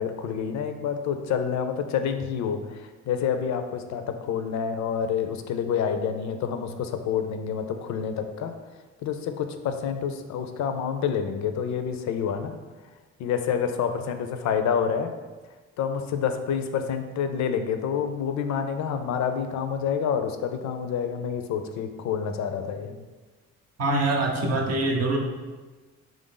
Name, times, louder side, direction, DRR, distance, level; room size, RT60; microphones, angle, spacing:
voice 1, 0.0-8.5 9.0-12.6 13.2-15.1 15.8-23.0, left 7 dB, 65° left, 7 dB, 0.4 m, -28 dB
voice 2, 23.8-25.2, right 2 dB, 55° right, 2 dB, 0.7 m, -24 dB
3.5 x 2.5 x 3.8 m, 1.3 s
cardioid pair, 90°, 30 cm